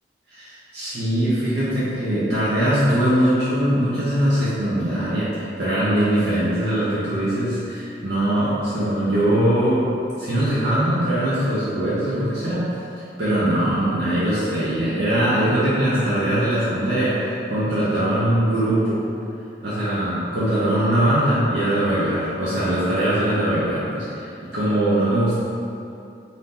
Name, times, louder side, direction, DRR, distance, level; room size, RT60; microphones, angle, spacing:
voice 1, 0.3-9.8 10.2-12.6 13.2-19.0 19.6-25.3, right 1 dB, 70° right, -11 dB, 0.7 m, -21 dB
2.7 x 2.6 x 3.6 m, 2.6 s
head